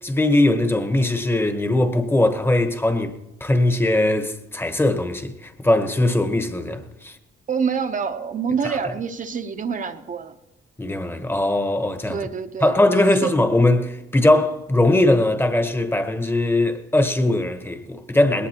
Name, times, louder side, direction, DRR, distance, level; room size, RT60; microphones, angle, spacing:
voice 1, 0.0-7.2 8.6-8.8 10.8-12.3 12.6-18.5, left 1 dB, 10° left, 1.1 m, -20 dB
voice 2, 7.5-10.4 12.1-13.3, right 6 dB, 40° right, 0.8 m, -27 dB
20.0 x 18.5 x 2.9 m
cardioid pair, 90°, 20 cm